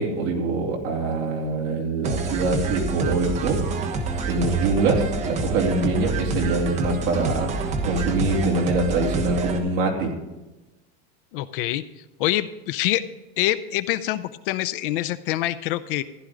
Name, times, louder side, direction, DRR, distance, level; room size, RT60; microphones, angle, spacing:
voice 1, 0.0-3.6 4.2-10.1, right 3 dB, 40° right, 0 dB, 2.8 m, -24 dB
sound 1, 2.0-9.6, right 3 dB, 20° right, 1.2 m, -27 dB
voice 2, 11.3-11.8 12.2-13.0 13.4-16.0, left 15 dB, 55° left, 14 dB, 0.5 m, -25 dB
15.0 x 11.5 x 3.8 m, 1.1 s
supercardioid pair, 170°, 33 cm